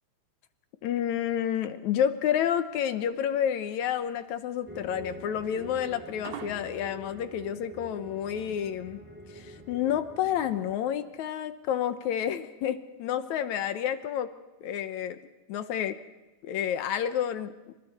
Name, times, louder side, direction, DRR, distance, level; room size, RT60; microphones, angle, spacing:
voice 1, 0.8-9.0 9.4-14.3 14.6-15.2 15.5-16.0 16.4-17.5, left 9 dB, 75° left, 11 dB, 2.1 m, -29 dB
sound 1, 2.3-7.3, right 7 dB, 65° right, 2.5 m, -46 dB
sound 2, 4.7-10.8, right 1 dB, 5° right, 1.7 m, -45 dB
28.5 x 25.0 x 4.2 m, 1.1 s
omnidirectional pair, 3.6 m